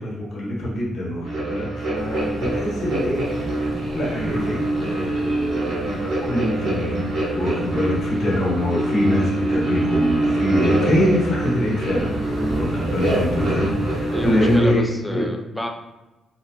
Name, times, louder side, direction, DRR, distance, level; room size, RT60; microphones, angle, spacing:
voice 1, 0.0-3.2 3.9-14.8 15.1-15.3, left 1 dB, 55° left, -4 dB, 0.9 m, -24 dB
sound 1, 1.2-14.7, right 2 dB, 90° right, 1.3 m, -25 dB
sound 2, 1.9-14.6, equal, 45° right, 0.7 m, -34 dB
voice 2, 14.1-15.7, left 1 dB, 10° left, 3 dB, 0.4 m, -29 dB
2.9 x 2.1 x 2.8 m, 1.0 s
cardioid pair, 90°, 0 cm